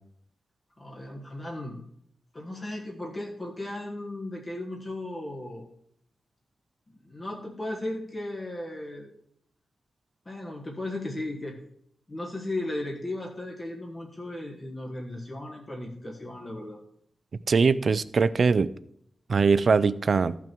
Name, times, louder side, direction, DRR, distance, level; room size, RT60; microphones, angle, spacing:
voice 1, 0.8-1.8 2.3-5.6 6.9-9.1 10.2-11.6 12.1-16.8, left 1 dB, 20° left, 1.5 m, -36 dB
voice 2, 17.5-18.7 19.3-20.4, right 5 dB, 45° right, 0.4 m, -22 dB
14.5 x 5.9 x 4.5 m
wide cardioid pair, 175°, 0 cm